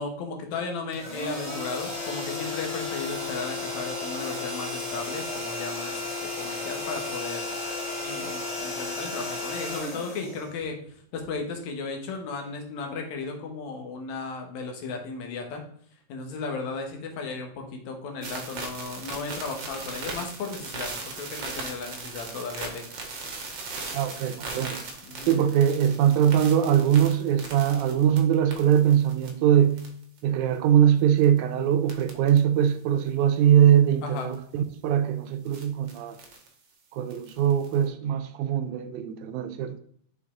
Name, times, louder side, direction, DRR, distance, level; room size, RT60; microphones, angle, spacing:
voice 1, 0.0-6.0 6.4-7.5 8.0-10.8 11.1-15.6 16.1-20.9 21.2-22.8 24.3-24.6 25.1-25.4 34.0-34.3, left 4 dB, 70° left, 2.3 m, -35 dB
sound 1, 0.9-10.9, left 3 dB, 15° left, 1.9 m, -33 dB
sound 2, 18.2-29.3 29.7-30.2 31.2-31.4 31.9-32.4 32.7-32.8 34.2-34.4 35.5-36.5 37.1-37.8, right 3 dB, 55° right, 1.4 m, -38 dB
voice 2, 23.9-24.8 25.3-29.8 30.2-36.2 36.9-39.8, right 9 dB, 80° right, 1.9 m, -22 dB
6.5 x 5.2 x 3.6 m
omnidirectional pair, 3.5 m